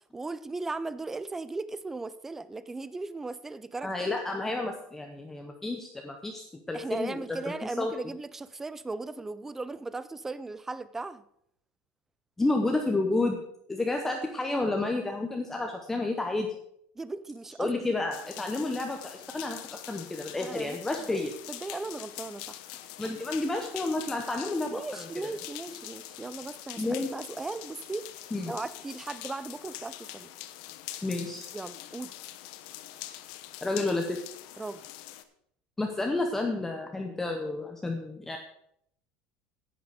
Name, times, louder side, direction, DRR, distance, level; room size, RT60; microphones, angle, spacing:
voice 1, 0.1-3.9 6.7-11.2 17.0-17.8 18.5-18.6 20.4-20.8 21.1-22.6 23.0-23.1 24.7-28.0 28.5-30.3 31.5-32.2 34.6-34.8, right 3 dB, 10° right, 15 dB, 0.4 m, -37 dB
voice 2, 3.8-7.9 12.4-13.4 13.7-16.5 17.6-21.3 23.0-25.3 25.7-25.8 26.8-27.1 28.3-28.5 31.0-31.5 33.6-34.2 35.8-38.4, left 2 dB, 5° left, 3 dB, 0.8 m, -31 dB
sound 1, 18.1-35.2, left 14 dB, 70° left, 0.9 m, -44 dB
10.5 x 9.0 x 4.9 m, 0.71 s
cardioid pair, 165°, 4 cm